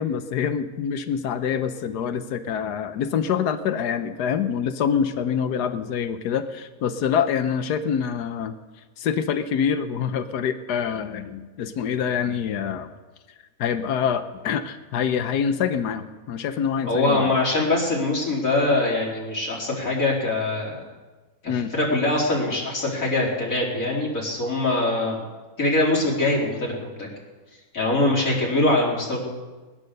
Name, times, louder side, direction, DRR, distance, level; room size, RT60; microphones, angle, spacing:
voice 1, 0.0-8.5 9.0-12.9 13.6-17.3 21.5-21.7, left 7 dB, 85° left, 10 dB, 1.4 m, -25 dB
voice 2, 16.9-20.8 21.7-25.2 25.6-27.1 27.7-29.3, left 2 dB, 55° left, -3 dB, 4.1 m, -23 dB
20.5 x 10.5 x 6.6 m, 1.3 s
omnidirectional pair, 1.7 m